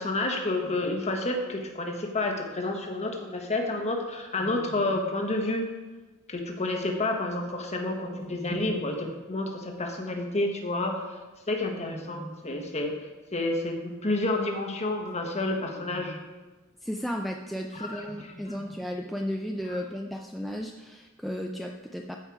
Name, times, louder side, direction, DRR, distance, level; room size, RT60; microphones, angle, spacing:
voice 1, 0.0-5.7 6.3-11.0 11.5-12.9 13.3-16.2 17.7-18.3 19.7-19.8, left 2 dB, 30° left, 3 dB, 1.3 m, -30 dB
voice 2, 16.8-22.2, equal, ahead, 1 dB, 0.4 m, -34 dB
14.5 x 5.5 x 4.7 m, 1.2 s
head